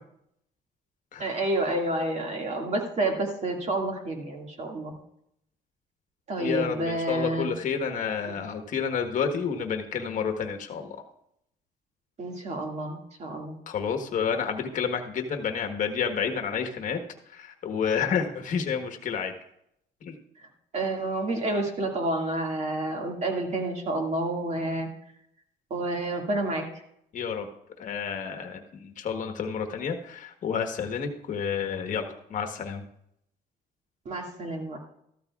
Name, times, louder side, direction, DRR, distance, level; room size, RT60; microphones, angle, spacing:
voice 1, 1.2-4.9 6.3-7.6 8.3-8.4 12.2-13.6 20.7-24.9 25.7-26.7 34.1-34.8, right 2 dB, 40° right, 2 dB, 2.1 m, -29 dB
voice 2, 6.4-11.0 13.7-17.0 17.3-19.3 20.0-20.2 27.1-27.5 27.8-32.8, left 6 dB, 50° left, 5 dB, 1.2 m, -30 dB
14.0 x 13.0 x 2.4 m, 0.76 s
cardioid pair, 110°, 17 cm